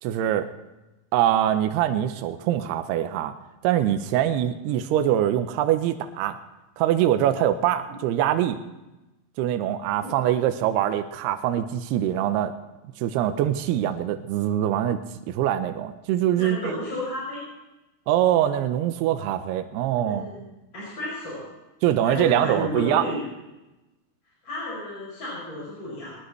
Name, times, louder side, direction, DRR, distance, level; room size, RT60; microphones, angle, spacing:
voice 1, 0.0-0.5 1.1-3.3 3.6-6.4 6.8-8.6 9.4-12.5 13.0-15.0 15.3-16.7 18.1-20.3 21.8-23.0, right 11 dB, 85° right, 8 dB, 2.4 m, -23 dB
voice 2, 16.3-17.4 20.0-20.4 20.7-21.4 22.0-23.2 24.4-26.2, left 1 dB, 25° left, -8 dB, 7.1 m, -32 dB
21.5 x 19.5 x 3.3 m, 1.0 s
omnidirectional pair, 5.5 m